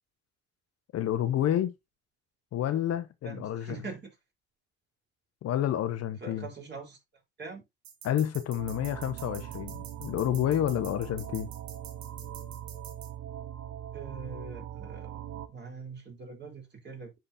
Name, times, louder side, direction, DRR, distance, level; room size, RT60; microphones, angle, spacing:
voice 1, 0.9-1.7 2.5-3.8 5.4-6.5 8.0-11.5, left 11 dB, 50° left, 0.9 m, -29 dB
voice 2, 3.2-4.2 6.2-7.0 7.4-7.6 13.9-17.1, right 4 dB, 35° right, 3.4 m, -43 dB
sound 1, 7.8-13.1, right 8 dB, 90° right, 1.5 m, -47 dB
sound 2, 8.6-15.5, right 10 dB, 55° right, 0.9 m, -41 dB
10.0 x 3.8 x 2.7 m
supercardioid pair, 80°, 32 cm